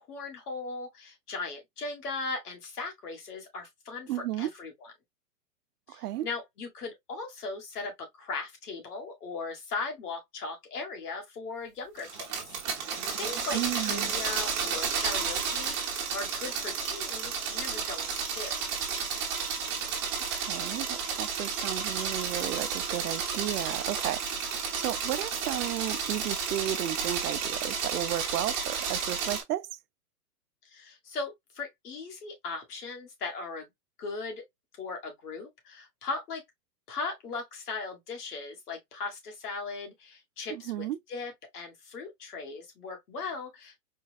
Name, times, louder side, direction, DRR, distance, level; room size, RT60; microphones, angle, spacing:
voice 1, 0.0-4.9 5.9-18.6 30.6-33.7 34.0-34.4 34.8-36.4 36.9-43.8, left 4 dB, 70° left, 1.8 m, -38 dB
voice 2, 4.1-4.5 5.9-6.3 13.5-14.1 20.3-24.5 24.8-29.7 40.5-41.0, right 13 dB, 75° right, 0.6 m, -33 dB
sound 1, 12.0-29.4, right 6 dB, 30° right, 1.1 m, -32 dB
4.5 x 2.3 x 2.4 m
hypercardioid pair, 160°, 47 cm